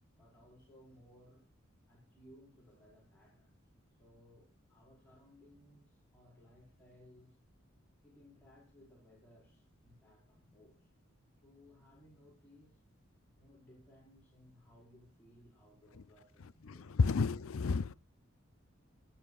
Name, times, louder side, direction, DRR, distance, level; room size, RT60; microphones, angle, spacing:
voice 1, 0.1-1.4 1.9-3.6 3.9-7.4 8.0-10.9 11.4-12.8 13.4-17.0, left 1 dB, 10° left, 4.9 m, -62 dB
voice 2, 17.0-17.9, left 4 dB, 85° left, 0.5 m, -30 dB
21.0 x 8.9 x 2.4 m
head